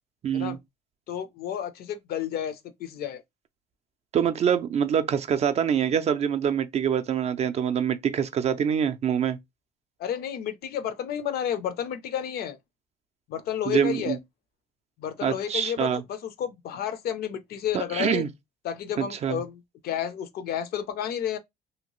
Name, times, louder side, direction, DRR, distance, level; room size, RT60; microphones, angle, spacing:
voice 1, 0.2-0.6 4.1-9.4 13.7-14.2 15.2-16.0 17.7-18.3 19.0-19.4, right 8 dB, 40° right, 0.4 m, -25 dB
voice 2, 1.1-3.2 10.0-12.6 13.3-14.2 15.0-18.2 18.6-21.4, left 9 dB, 65° left, 0.5 m, -31 dB
2.7 x 2.1 x 3.0 m
cardioid pair, 110°, 17 cm